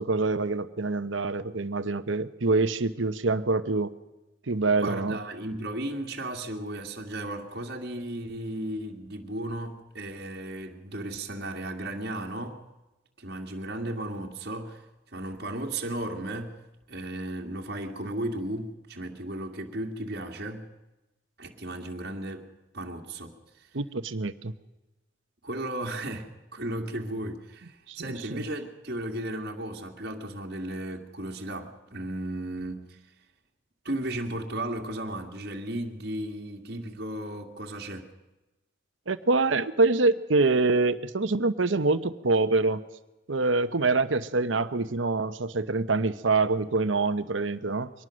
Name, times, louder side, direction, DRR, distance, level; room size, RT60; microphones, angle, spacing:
voice 1, 0.0-3.9 4.5-5.2 23.7-24.5 27.9-28.0 28.3-28.4 39.1-42.8 43.3-47.9, right 3 dB, 85° right, 11 dB, 1.0 m, -25 dB
voice 2, 4.8-12.6 13.2-14.8 15.1-16.6 16.9-20.7 21.4-22.5 22.7-23.4 25.4-33.0 33.8-38.1, right 1 dB, 55° right, 0 dB, 2.2 m, -35 dB
23.5 x 19.0 x 6.4 m, 1.0 s
head